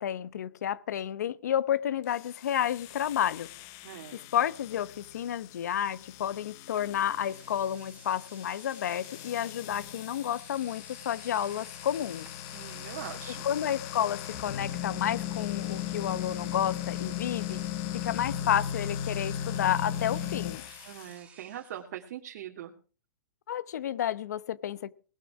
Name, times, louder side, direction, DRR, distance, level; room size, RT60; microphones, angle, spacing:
voice 1, 0.0-3.5 4.1-12.3 13.4-17.6 18.0-20.6 23.5-24.9, left 10 dB, 70° left, 0.9 m, -31 dB
sound 1, 2.0-21.1, left 10 dB, 35° left, 1.0 m, -38 dB
voice 2, 3.8-4.2 12.5-13.5 20.8-22.7, right 11 dB, 55° right, 2.4 m, -42 dB
Engine / Domestic sounds home sounds, 6.8-6.9 7.2-21.8, right 7 dB, 15° right, 5.9 m, -55 dB
19.0 x 12.5 x 4.8 m
hypercardioid pair, 140°, 9 cm